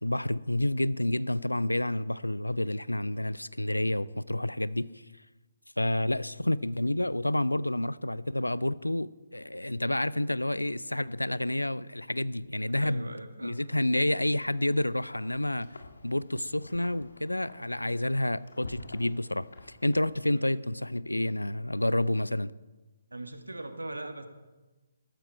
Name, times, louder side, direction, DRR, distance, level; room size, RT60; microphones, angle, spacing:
voice 1, 0.0-4.9 5.8-13.1 13.4-22.5, left 1 dB, 85° left, 0.4 m, -29 dB
voice 2, 12.7-13.6 20.2-20.5 23.1-24.3, right 2 dB, 75° right, 1.5 m, -40 dB
Wind, 14.1-20.6, left 2 dB, 65° left, 1.8 m, -50 dB
14.0 x 13.0 x 4.5 m
figure-of-eight pair, 140°, 0 cm